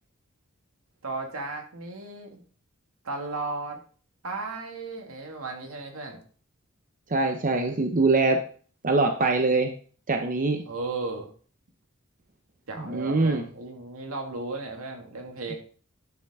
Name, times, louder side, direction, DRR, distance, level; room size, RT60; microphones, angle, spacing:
voice 1, 1.0-2.4 3.0-3.8 4.2-6.2 10.7-11.3 12.7-15.6, right 3 dB, 80° right, 3 dB, 2.2 m, -35 dB
voice 2, 7.1-8.4 8.8-9.7 10.1-10.6 12.8-13.4, right 3 dB, 40° right, 5 dB, 0.9 m, -23 dB
10.5 x 7.4 x 3.7 m, 0.42 s
head